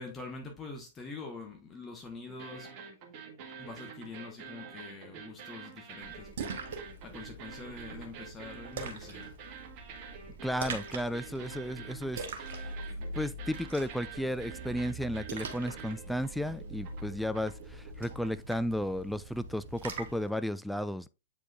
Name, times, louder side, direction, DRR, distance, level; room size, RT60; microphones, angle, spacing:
voice 1, 0.0-2.7 3.6-6.6 7.0-9.3, left 3 dB, 20° left, 1.2 m, -45 dB
sound 1, 2.3-18.4, right 6 dB, 35° right, 1.4 m, -47 dB
Splash splatter, 6.0-20.3, right 3 dB, 55° right, 1.2 m, -43 dB
voice 2, 10.4-12.7 13.2-21.1, equal, ahead, 0.3 m, -34 dB
7.9 x 4.9 x 2.4 m
figure-of-eight pair, 105°, 0 cm